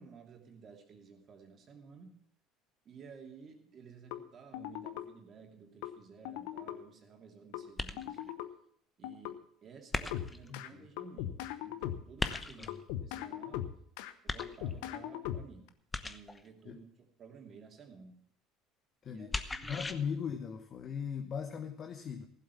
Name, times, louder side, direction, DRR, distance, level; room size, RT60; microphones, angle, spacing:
voice 1, 0.0-2.1 2.8-8.3 9.0-11.4 11.6-13.7 14.2-15.7 16.0-18.2 19.0-19.9, right 5 dB, 45° right, 3 dB, 2.8 m, -54 dB
sound 1, 4.1-4.2 4.5-5.1 5.8-5.9 6.3-6.8 7.5-7.6 8.0-8.5 9.0-9.3 10.1-10.7 11.0-12.4 12.7-14.1 14.4-15.7, left 12 dB, 75° left, 0.9 m, -39 dB
sound 2, 7.8-8.3 9.9-10.5 12.2-12.8 14.3-14.9 15.9-16.5 19.3-19.9, left 3 dB, 20° left, 1.0 m, -37 dB
voice 2, 10.5-10.9 12.6-12.7 16.7-16.8 19.0-22.3, left 7 dB, 45° left, 6 dB, 1.2 m, -39 dB
15.5 x 7.7 x 7.0 m, 0.64 s
hypercardioid pair, 75°, 0 cm